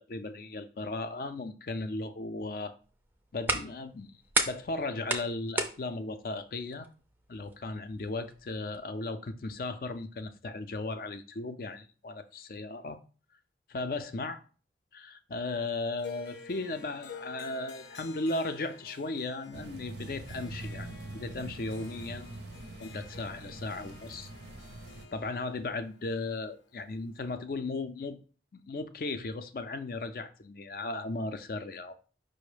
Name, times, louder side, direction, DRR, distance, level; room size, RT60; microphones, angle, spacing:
voice 1, 0.1-2.8 3.3-4.1 4.5-6.9 7.3-13.0 13.7-14.4 14.9-20.9 21.1-22.4 22.8-24.3 25.1-28.2 28.5-31.9, left 2 dB, 55° left, 0.4 m, -36 dB
sound 1, 2.8-8.8, right 2 dB, 10° right, 0.4 m, -36 dB
Harp, 16.0-27.3, left 5 dB, 85° left, 0.7 m, -51 dB
sound 2, 19.5-25.1, right 2 dB, 75° right, 0.6 m, -44 dB
5.2 x 2.1 x 4.9 m
head